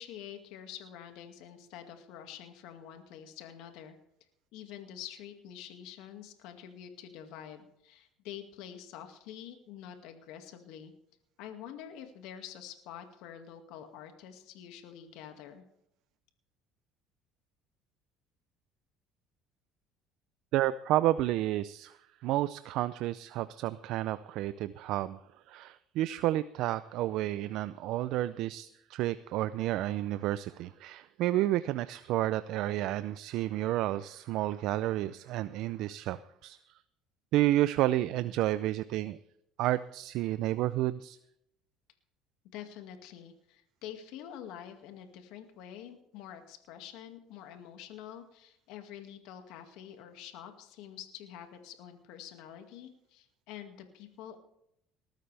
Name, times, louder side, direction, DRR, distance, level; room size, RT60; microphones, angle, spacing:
voice 1, 0.0-4.0 4.5-10.9 11.4-15.6 42.5-54.4, left 10 dB, 75° left, 6 dB, 2.1 m, -47 dB
voice 2, 20.5-22.0 22.2-25.2 25.5-36.6 37.3-39.2 39.6-41.2, right 14 dB, 70° right, 14 dB, 0.5 m, -30 dB
19.5 x 13.0 x 3.4 m, 0.75 s
supercardioid pair, 105°, 0 cm